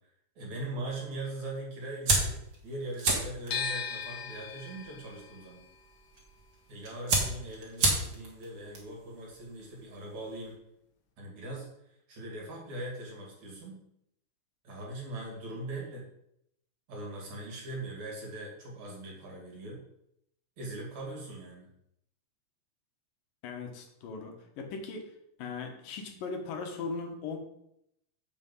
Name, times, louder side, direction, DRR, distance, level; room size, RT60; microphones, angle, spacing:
voice 1, 0.4-2.4 2.6-5.6 6.7-10.5 11.2-11.7 12.1-13.8 14.6-16.0 16.9-19.8 20.6-21.7, right 2 dB, 60° right, -1 dB, 3.7 m, -40 dB
sound 1, 2.0-10.5, right 2 dB, 40° right, 2.5 m, -34 dB
sound 2, 3.5-9.5 9.8-11.1, left 6 dB, 60° left, 1.3 m, -40 dB
voice 2, 23.4-25.1 25.4-27.4, left 4 dB, 80° left, 3 dB, 3.0 m, -38 dB
7.8 x 7.2 x 5.4 m, 0.77 s
omnidirectional pair, 3.9 m